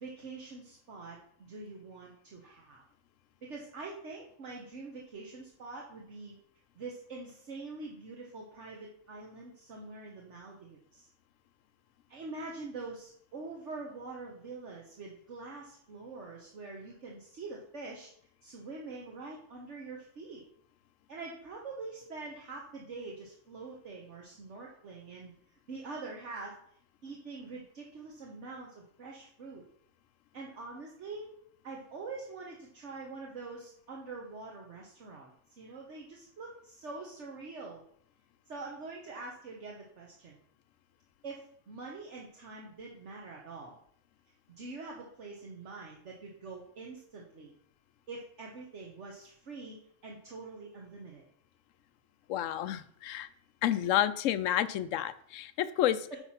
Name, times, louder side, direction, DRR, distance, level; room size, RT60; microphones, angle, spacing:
voice 1, 0.0-2.8 3.4-6.4 6.7-11.1 12.1-18.1 18.4-20.4 21.1-25.3 25.7-26.5 27.0-29.6 30.3-31.3 31.6-35.3 35.6-37.8 38.5-40.4 41.2-43.8 44.6-47.5 48.1-51.2 56.1-56.2, right 3 dB, 70° right, -1 dB, 1.5 m, -45 dB
voice 2, 52.3-53.3 53.6-56.1, left 12 dB, 85° left, 14 dB, 1.0 m, -30 dB
8.9 x 4.6 x 5.7 m, 0.64 s
omnidirectional pair, 1.3 m